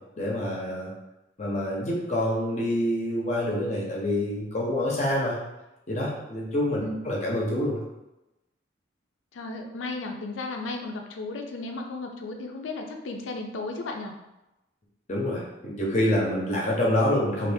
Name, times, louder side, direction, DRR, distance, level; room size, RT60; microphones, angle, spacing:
voice 1, 0.2-0.9 1.4-5.4 5.9-7.8 15.1-17.5, left 1 dB, 35° left, -3 dB, 0.6 m, -26 dB
voice 2, 9.3-14.1, left 3 dB, 80° left, 4 dB, 0.4 m, -34 dB
2.6 x 2.4 x 3.4 m, 0.96 s
head